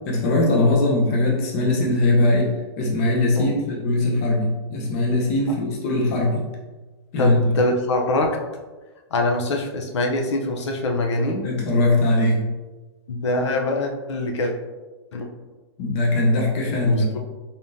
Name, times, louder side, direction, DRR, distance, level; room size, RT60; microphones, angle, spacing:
voice 1, 0.0-6.4 7.1-7.4 11.4-12.5 15.8-17.1, left 2 dB, 30° left, -2 dB, 0.8 m, -20 dB
voice 2, 7.2-8.4 9.1-11.5 13.1-14.5 15.1-15.3 16.9-17.2, left 2 dB, 85° left, 2 dB, 0.6 m, -24 dB
3.7 x 3.6 x 2.6 m, 1.2 s
hypercardioid pair, 165°, 14 cm